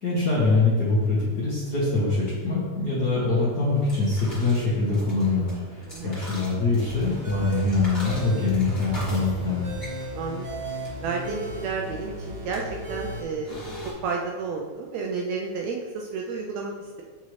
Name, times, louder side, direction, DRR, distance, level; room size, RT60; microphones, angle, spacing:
voice 1, 0.0-9.7, left 3 dB, 50° left, -8 dB, 1.3 m, -24 dB
sound 1, 3.6-13.9, equal, 20° left, 1.5 m, -43 dB
voice 2, 5.9-6.2 10.1-10.5 11.0-13.6 14.0-17.0, right 4 dB, 75° right, 0 dB, 1.6 m, -31 dB
sound 2, 6.8-13.2, equal, 50° right, 2.2 m, -35 dB
6.4 x 5.5 x 3.2 m, 1.5 s
omnidirectional pair, 3.4 m